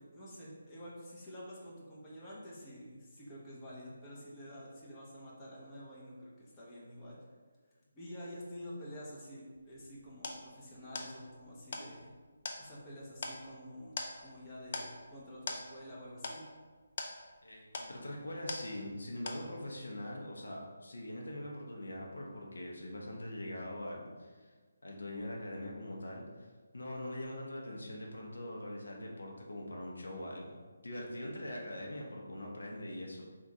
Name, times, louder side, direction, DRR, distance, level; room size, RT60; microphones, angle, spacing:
voice 1, 0.0-7.2 7.9-12.1 12.6-13.9 14.2-16.5, equal, 15° left, -7 dB, 0.9 m, -48 dB
sound 1, 9.6-19.0 19.3-19.8, left 3 dB, 45° left, 0.5 m, -44 dB
voice 2, 17.4-24.5 24.8-26.5 26.7-30.6 30.8-33.3, left 1 dB, 80° left, -1 dB, 0.8 m, -42 dB
3.6 x 2.4 x 4.2 m, 1.4 s
figure-of-eight pair, 155°, 0 cm